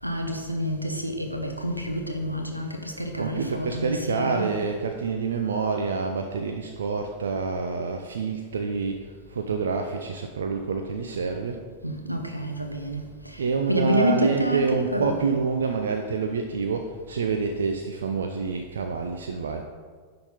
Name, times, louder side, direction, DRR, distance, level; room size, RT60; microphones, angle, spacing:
voice 1, 0.0-4.5 11.8-15.2, equal, 90° right, 3 dB, 1.0 m, -28 dB
voice 2, 3.2-9.0 9.3-11.6 13.4-19.6, right 4 dB, 65° right, 4 dB, 0.6 m, -27 dB
10.5 x 3.9 x 5.3 m, 1.5 s
figure-of-eight pair, 90°, 0 cm